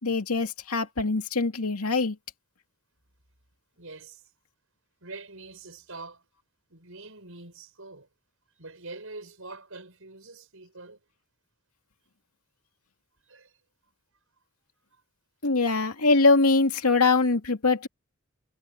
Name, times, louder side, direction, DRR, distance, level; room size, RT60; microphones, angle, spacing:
voice 1, 0.0-2.2 15.4-17.9, left 3 dB, 85° left, 2.3 m, -23 dB
voice 2, 3.8-4.3 5.0-6.2 6.7-8.1 8.6-11.0 13.2-13.5, right 3 dB, 65° right, 7.4 m, -44 dB
head